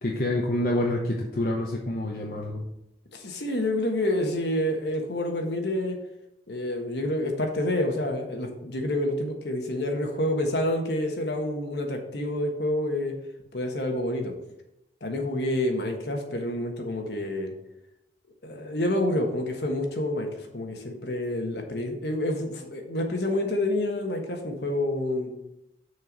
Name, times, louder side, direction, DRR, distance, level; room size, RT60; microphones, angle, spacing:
voice 1, 0.0-2.6, left 1 dB, 50° left, -1 dB, 0.8 m, -27 dB
voice 2, 3.1-6.0 6.5-13.1 13.5-14.3 15.0-17.5 18.4-25.3, left 1 dB, 70° left, 3 dB, 1.4 m, -28 dB
6.5 x 4.5 x 6.6 m, 0.85 s
head